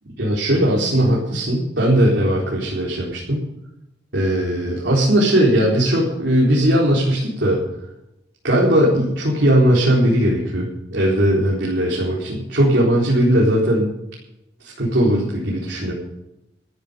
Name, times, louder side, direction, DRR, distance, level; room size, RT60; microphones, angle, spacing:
voice 1, 0.2-3.4 4.1-7.6 8.4-13.9 14.6-15.9, right 1 dB, 65° right, -4 dB, 4.3 m, -18 dB
14.0 x 14.0 x 5.2 m, 0.90 s
head